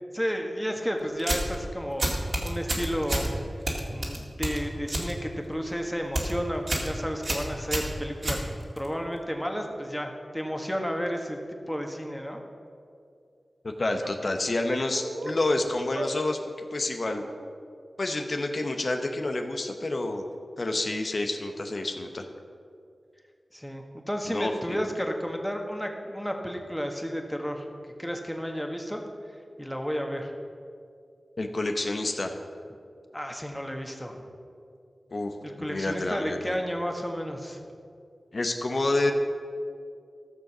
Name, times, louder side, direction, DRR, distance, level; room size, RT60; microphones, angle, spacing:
voice 1, 0.1-3.3 3.9-8.4 8.8-11.4 11.7-12.4 23.5-27.7 28.0-29.0 29.6-30.3 33.1-34.2 35.4-37.6, equal, 5° left, 3 dB, 1.6 m, -32 dB
sound 1, 1.2-1.6 2.0-3.3 3.7-5.1 5.4-5.7 6.0-6.3 6.7-6.9 7.2-8.9, right 1 dB, 55° right, 2.1 m, -29 dB
voice 2, 13.6-16.4 16.7-17.2 18.0-20.2 20.6-22.3 24.3-24.8 31.4-32.3 35.1-36.6 38.3-39.1, left 2 dB, 60° left, 4 dB, 0.9 m, -29 dB
sound 2, 13.9-14.2 14.9-15.4 15.9-16.1 17.0-17.5, right 2 dB, 80° right, 1.0 m, -37 dB
14.5 x 6.6 x 6.2 m, 2.4 s
cardioid pair, 45°, 0 cm